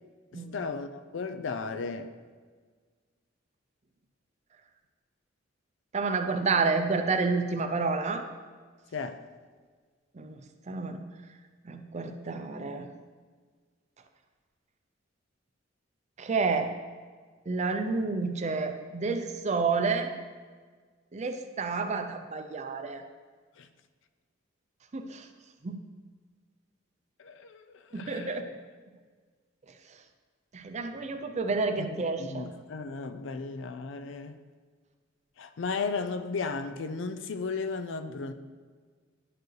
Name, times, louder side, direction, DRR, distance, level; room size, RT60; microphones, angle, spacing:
voice 1, 0.3-2.1 8.9-9.2 23.6-23.7 27.2-28.4 31.8-31.9 32.2-34.4 35.4-38.3, left 4 dB, 70° left, 0.4 m, -35 dB
voice 2, 5.9-8.3 10.1-10.4 10.7-11.0 11.6-12.9 16.2-16.7 17.5-20.1 21.1-23.0 24.9-25.3 25.6-25.8 27.9-28.5 30.5-32.5, right 4 dB, 35° right, 0.5 m, -30 dB
10.5 x 4.6 x 3.2 m
head